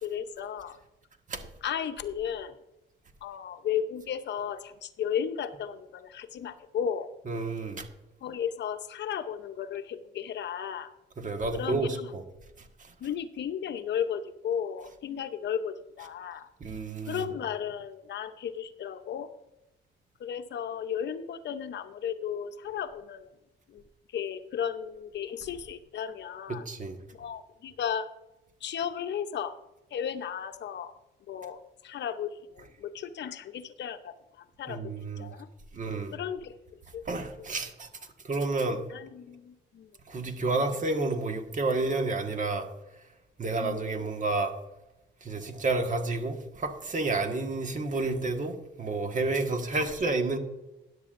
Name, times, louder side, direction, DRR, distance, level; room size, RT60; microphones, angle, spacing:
voice 1, 0.0-0.8 1.6-2.6 3.2-7.1 8.2-10.9 11.5-12.1 13.0-16.5 17.1-19.3 20.2-23.3 23.7-23.8 24.1-26.7 27.1-28.1 28.6-29.6 29.9-30.9 31.3-34.9 35.2-35.5 36.1-37.0 37.4-37.5 38.9-39.9 43.6-43.9 49.7-50.2, left 8 dB, 60° left, 10 dB, 0.7 m, -34 dB
voice 2, 7.3-7.9 11.2-12.2 12.8-12.9 16.6-17.2 26.5-27.0 34.7-35.3 35.7-36.1 37.1-37.9 38.2-38.8 40.1-42.7 43.4-44.5 45.2-50.4, right 3 dB, 40° right, 5 dB, 1.5 m, -30 dB
13.0 x 10.5 x 2.5 m, 0.95 s
cardioid pair, 90°, 20 cm